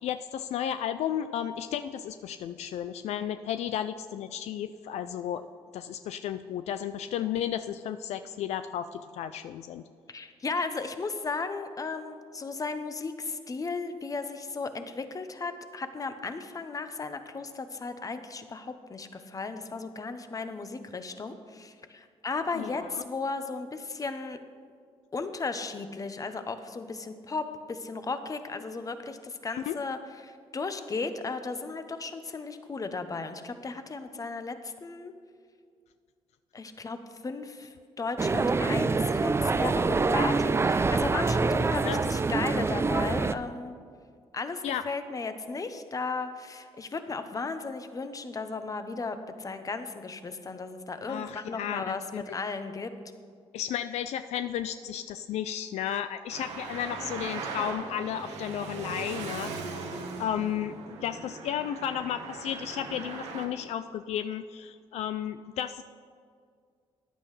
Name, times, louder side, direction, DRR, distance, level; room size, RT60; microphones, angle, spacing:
voice 1, 0.0-5.5 5.7-9.8 22.5-23.0 29.5-29.8 41.8-42.0 44.6-44.8 51.1-52.3 53.5-59.5 60.2-65.8, left 10 dB, 75° left, 10 dB, 0.4 m, -33 dB
voice 2, 10.1-24.4 25.1-30.0 30.2-35.1 36.5-37.0 37.2-43.7 44.3-52.9, left 4 dB, 30° left, 9 dB, 0.9 m, -35 dB
sound 1, 38.2-43.3, right 4 dB, 25° right, 0.4 m, -25 dB
Traffic noise roadway noise, 56.3-63.5, right 4 dB, 85° right, 1.3 m, -39 dB
14.5 x 9.9 x 3.2 m, 2.1 s
cardioid pair, 75°, 11 cm